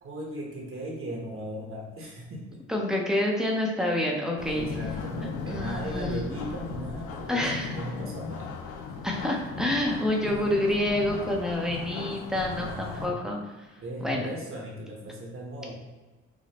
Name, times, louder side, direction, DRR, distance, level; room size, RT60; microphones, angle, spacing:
voice 1, 0.0-2.6 4.5-8.5 12.5-13.3 13.8-15.7, equal, 45° right, -1 dB, 1.0 m, -37 dB
voice 2, 2.7-4.6 5.5-6.4 7.3-7.7 9.0-13.4 14.0-14.3, left 1 dB, ahead, 0 dB, 0.7 m, -28 dB
sound 1, 4.4-13.1, left 4 dB, 85° left, 0.5 m, -37 dB
5.0 x 2.1 x 2.9 m, 1.2 s
cardioid pair, 90°, 30 cm